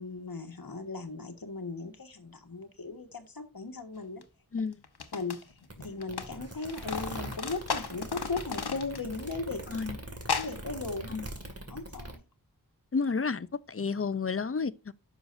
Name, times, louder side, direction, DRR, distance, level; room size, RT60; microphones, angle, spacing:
voice 1, 0.0-4.2 5.1-5.5 5.8-9.6 10.3-11.2 11.7-12.2, left 3 dB, 65° left, 1.6 m, -37 dB
sound 1, 4.2-4.3 4.8-6.3 6.5-9.3 9.5-9.6 10.2-10.6, left 5 dB, 90° left, 1.0 m, -35 dB
sound 2, 5.7-12.2, right 1 dB, 40° right, 2.1 m, -42 dB
voice 2, 12.9-14.9, left 5 dB, 35° left, 0.5 m, -31 dB
10.0 x 6.4 x 2.6 m
wide cardioid pair, 55°, 38 cm